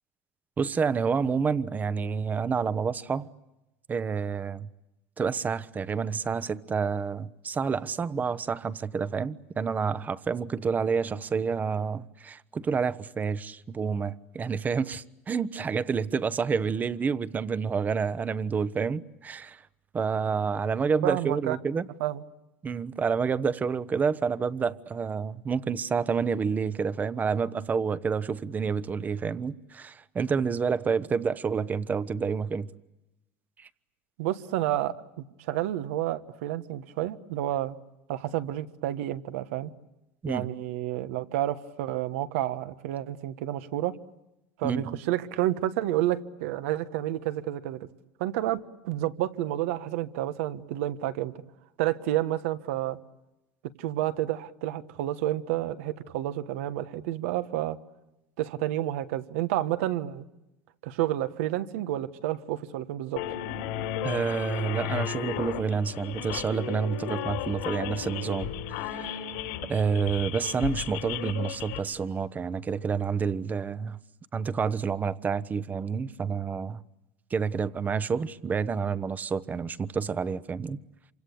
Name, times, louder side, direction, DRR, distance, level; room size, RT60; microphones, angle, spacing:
voice 1, 0.6-3.3 3.9-4.7 5.2-19.6 19.9-21.9 22.6-32.7 33.6-33.7 40.2-40.5 44.6-45.0 64.0-68.5 68.9-69.2 69.7-74.0 74.3-76.8 77.3-80.8, right 5 dB, 25° right, 0.9 m, -29 dB
voice 2, 21.0-21.6 22.0-22.2 34.2-37.7 38.1-39.7 40.3-43.9 44.6-47.9 48.2-51.3 51.8-53.0 53.8-57.8 58.4-60.2 60.8-63.2, right 13 dB, 80° right, 1.3 m, -30 dB
sound 1, 63.2-71.8, left 11 dB, 85° left, 4.4 m, -34 dB
27.5 x 25.5 x 8.5 m
supercardioid pair, 125°, 7 cm